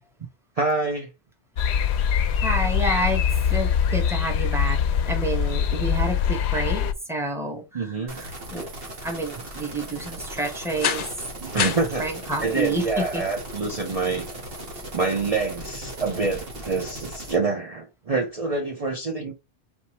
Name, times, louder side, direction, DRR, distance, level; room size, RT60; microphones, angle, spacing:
voice 1, 0.6-1.1 7.7-8.2 11.4-12.1 12.4-14.2 14.9-19.3, right 3 dB, 40° right, 0.8 m, -26 dB
sound 1, 1.6-6.9, left 8 dB, 90° left, 0.9 m, -23 dB
voice 2, 2.1-3.2 3.5-8.7 9.0-11.1 12.0-13.2, right 1 dB, 5° right, 1.1 m, -29 dB
sound 2, 8.1-17.4, right 1 dB, 60° right, 1.5 m, -38 dB
sound 3, 10.8-16.3, left 7 dB, 55° left, 0.7 m, -34 dB
4.3 x 3.6 x 2.9 m
omnidirectional pair, 1.1 m